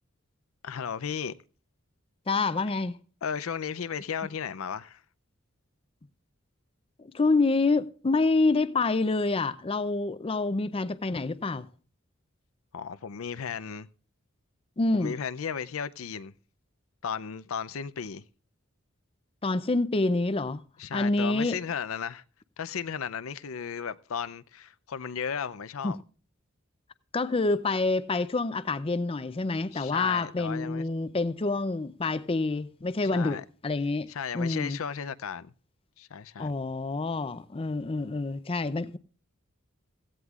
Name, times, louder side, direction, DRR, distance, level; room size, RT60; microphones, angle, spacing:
voice 1, 0.6-1.3 3.2-5.0 12.7-13.9 15.0-16.3 17.0-18.2 20.8-22.2 22.6-26.0 29.7-30.8 33.1-33.4 34.1-35.5 36.0-36.5, left 7 dB, 80° left, 0.5 m, -35 dB
voice 2, 2.3-3.0 7.0-11.7 14.8-15.1 19.4-20.6 20.9-21.6 25.8-25.9 27.1-34.1 34.3-34.8 36.4-39.0, left 3 dB, 25° left, 0.5 m, -27 dB
16.0 x 15.5 x 2.4 m
head